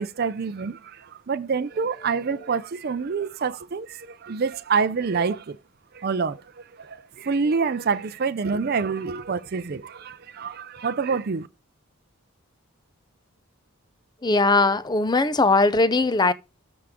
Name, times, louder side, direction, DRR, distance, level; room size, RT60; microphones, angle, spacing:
voice 1, 0.0-5.6 5.9-11.5, right 5 dB, 45° right, 0.5 m, -27 dB
voice 2, 14.2-16.3, left 3 dB, 20° left, 0.5 m, -20 dB
13.5 x 4.9 x 3.6 m
head